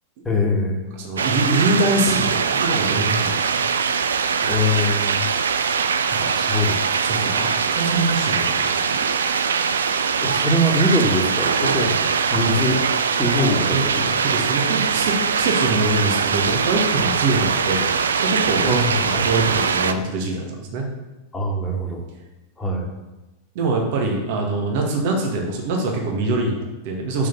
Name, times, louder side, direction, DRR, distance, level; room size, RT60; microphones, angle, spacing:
voice 1, 0.2-0.9 4.5-5.3 6.3-6.8 10.2-12.1 12.3-12.8 13.2-13.7 13.9-14.1 18.7-19.3 21.3-22.0 22.6-22.9, left 1 dB, 10° left, -1 dB, 1.9 m, -22 dB
voice 2, 0.9-3.6 6.1-6.6 7.0-9.0 13.4-13.8 14.2-17.9 18.2-20.9 23.6-27.3, right 2 dB, 50° right, 0 dB, 1.9 m, -24 dB
sound 1, 1.2-19.9, right 6 dB, 70° right, 0.5 m, -22 dB
6.3 x 6.1 x 7.2 m, 1.1 s
figure-of-eight pair, 90°, 0 cm